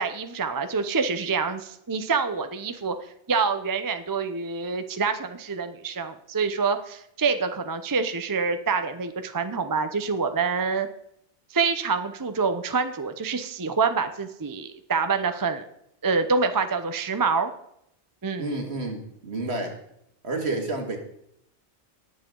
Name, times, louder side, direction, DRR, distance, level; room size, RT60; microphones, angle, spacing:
voice 1, 0.0-2.9 3.3-10.9 11.5-15.6 16.0-17.5 18.2-18.5, right 5 dB, 20° right, 9 dB, 0.6 m, -26 dB
voice 2, 18.4-19.8 20.2-21.0, right 2 dB, 65° right, 3 dB, 2.2 m, -30 dB
19.5 x 7.2 x 3.8 m, 0.75 s
omnidirectional pair, 1.2 m